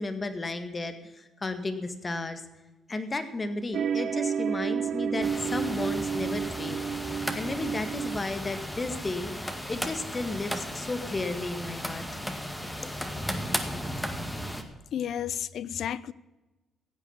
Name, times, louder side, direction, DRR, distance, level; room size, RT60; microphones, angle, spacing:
voice 1, 0.0-2.4 2.9-9.3 9.7-12.0, left 2 dB, 25° left, 9 dB, 1.8 m, -33 dB
sound 1, 3.7-8.2, right 7 dB, 60° right, 0.4 m, -31 dB
sound 2, 5.2-14.6, equal, 5° left, 2.0 m, -35 dB
voice 2, 14.9-16.1, left 9 dB, 70° left, 20 dB, 0.6 m, -32 dB
15.5 x 8.4 x 7.2 m, 1.1 s
cardioid pair, 90°, 0 cm